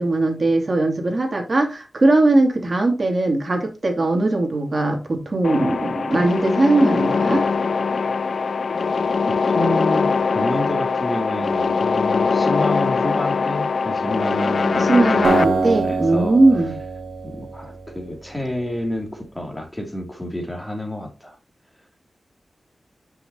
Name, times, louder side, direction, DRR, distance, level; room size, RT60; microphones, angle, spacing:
voice 1, 0.0-7.5 14.7-16.7, right 2 dB, 50° right, 2.7 m, -19 dB
sound 1, 5.4-15.5, left 5 dB, 75° left, 0.4 m, -21 dB
voice 2, 9.5-16.4 17.2-21.4, left 1 dB, 10° left, 2.8 m, -29 dB
Acoustic guitar, 15.2-18.4, right 4 dB, 80° right, 2.0 m, -25 dB
10.0 x 6.2 x 2.9 m
wide cardioid pair, 75°, 0 cm